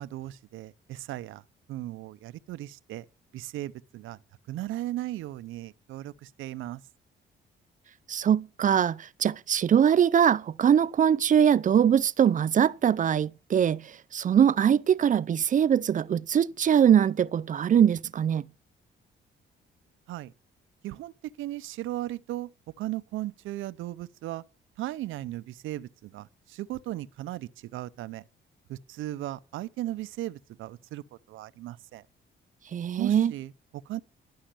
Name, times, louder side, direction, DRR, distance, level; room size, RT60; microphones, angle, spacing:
voice 1, 0.0-1.4 1.7-3.0 3.3-4.2 4.5-6.8 20.1-20.3 20.8-22.5 22.8-24.4 24.8-28.2 28.7-32.0 33.0-34.0, right 15 dB, 85° right, 0.6 m, -36 dB
voice 2, 8.1-18.4 32.7-33.3, right 8 dB, 40° right, 0.5 m, -22 dB
11.5 x 6.4 x 7.4 m
cardioid pair, 90°, 20 cm